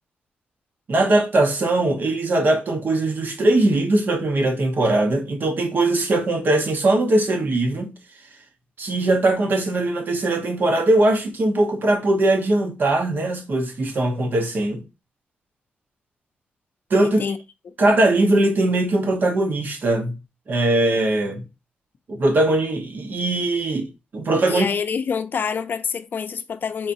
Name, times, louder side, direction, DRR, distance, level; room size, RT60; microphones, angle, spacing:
voice 1, 0.9-7.9 8.8-14.8 16.9-17.2 17.8-20.2 20.5-21.4 22.1-24.7, right 2 dB, 55° right, 1.0 m, -20 dB
voice 2, 17.0-17.4 24.5-26.9, left 6 dB, 55° left, 0.5 m, -26 dB
4.5 x 4.0 x 2.6 m
cardioid pair, 95°, 4 cm